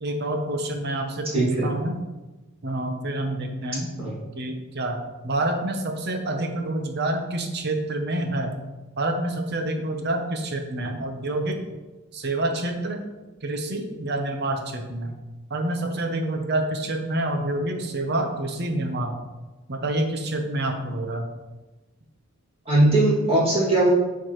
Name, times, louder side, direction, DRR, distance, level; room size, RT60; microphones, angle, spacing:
voice 1, 0.0-2.0 2.6-4.0 4.3-8.6 9.0-11.6 12.1-13.0 13.4-15.1 15.5-19.1 19.7-21.3, right 1 dB, 50° right, 5 dB, 0.8 m, -27 dB
voice 2, 1.3-1.7 4.0-4.1 22.7-23.9, right 1 dB, 25° right, -7 dB, 2.3 m, -19 dB
8.4 x 4.8 x 3.1 m, 1.1 s
head